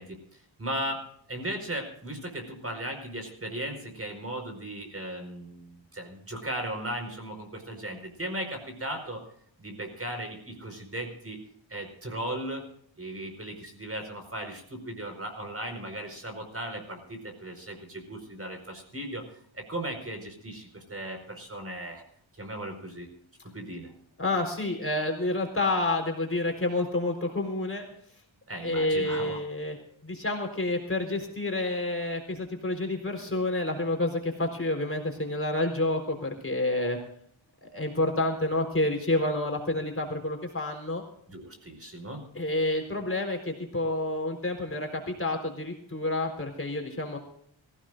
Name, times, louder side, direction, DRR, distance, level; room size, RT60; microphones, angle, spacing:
voice 1, 0.0-9.2 9.6-11.4 11.7-12.6 13.0-19.2 19.5-22.0 22.4-23.1 23.5-23.9 28.5-29.4 41.3-42.2, right 1 dB, 30° right, 4 dB, 4.9 m, -37 dB
voice 2, 24.2-27.9 28.6-29.8 30.0-37.0 37.6-41.0 42.3-47.2, left 2 dB, 30° left, 2 dB, 4.2 m, -29 dB
25.0 x 16.0 x 2.6 m, 0.66 s
wide cardioid pair, 100°, 47 cm